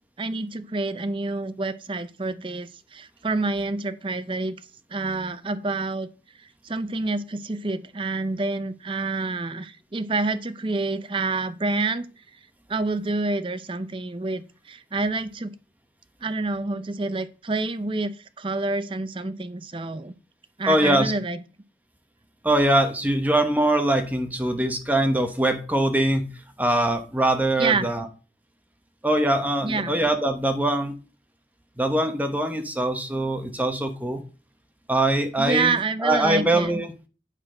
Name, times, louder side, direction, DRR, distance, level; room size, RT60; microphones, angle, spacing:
voice 1, 0.2-4.6 4.9-6.1 6.4-12.1 12.7-15.5 16.2-20.1 20.6-21.4 27.6-27.9 29.6-30.0 35.4-36.8, right 3 dB, 30° right, 12 dB, 0.6 m, -28 dB
voice 2, 20.7-21.1 22.4-26.3 26.6-28.1 29.0-30.9 31.8-34.2 34.9-36.9, right 1 dB, 10° right, 6 dB, 1.2 m, -22 dB
9.1 x 6.0 x 5.1 m, 0.35 s
head